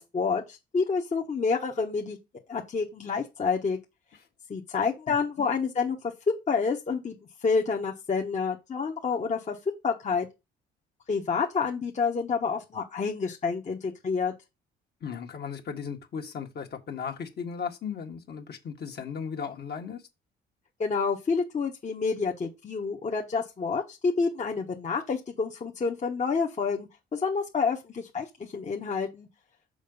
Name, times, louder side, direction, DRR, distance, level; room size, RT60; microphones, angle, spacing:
voice 1, 0.0-2.2 2.5-3.8 4.5-7.1 7.4-9.6 9.8-10.3 11.1-14.3 20.8-28.3 28.5-29.3, left 5 dB, 35° left, 1.2 m, -28 dB
voice 2, 15.0-20.0, left 6 dB, 55° left, 1.7 m, -36 dB
6.4 x 4.7 x 5.4 m
supercardioid pair, 75°, 21 cm